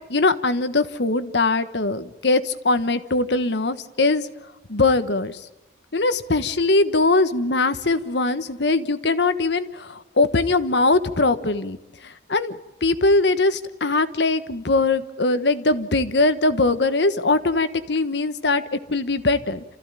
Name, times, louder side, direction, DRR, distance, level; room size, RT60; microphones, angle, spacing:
voice 1, 0.1-4.3 4.7-5.4 5.9-11.8 12.0-19.6, left 3 dB, 75° left, 11 dB, 1.3 m, -21 dB
28.5 x 15.0 x 9.0 m, 1.0 s
head